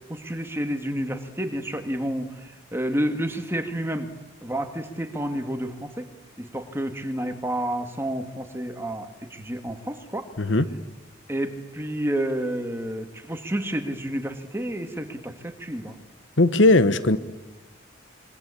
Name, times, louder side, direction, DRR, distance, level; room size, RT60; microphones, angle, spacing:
voice 1, 0.1-2.3 2.7-4.1 4.4-6.1 6.4-10.3 11.3-15.9, right 1 dB, 10° right, 6 dB, 2.1 m, -30 dB
voice 2, 16.4-17.2, left 2 dB, 70° left, 13 dB, 1.3 m, -18 dB
26.5 x 24.0 x 8.5 m, 1.1 s
head